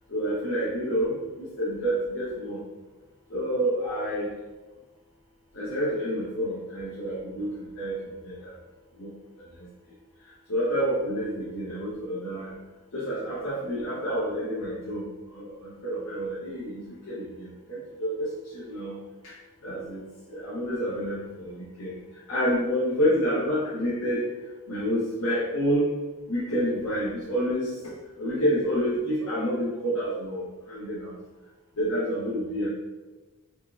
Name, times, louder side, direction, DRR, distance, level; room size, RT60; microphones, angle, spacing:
voice 1, 0.1-2.6 3.3-4.3 5.5-8.5 9.0-9.1 10.5-12.5 12.9-15.0 15.3-19.0 19.2-19.3 19.6-20.0 20.3-21.9 22.3-24.3 24.7-25.9 26.3-27.8 28.2-31.2 31.8-32.7, equal, 75° left, -8 dB, 0.8 m, -28 dB
3.6 x 2.9 x 2.5 m, 1.2 s
head